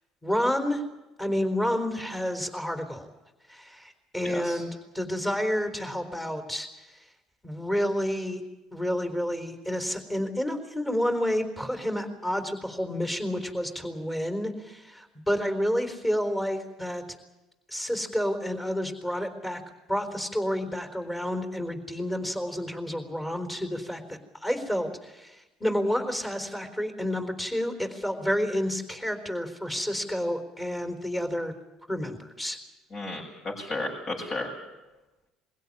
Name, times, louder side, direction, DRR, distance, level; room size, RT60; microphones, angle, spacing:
voice 1, 0.2-0.8 1.2-3.1 3.5-7.0 7.4-8.4 8.7-17.0 17.7-19.6 19.9-31.5 31.9-32.6, equal, 15° left, 6 dB, 3.9 m, -30 dB
voice 2, 4.2-4.5 32.9-34.5, left 2 dB, 45° left, -3 dB, 8.0 m, -33 dB
22.0 x 16.5 x 9.7 m, 1.1 s
supercardioid pair, 85°, 0 cm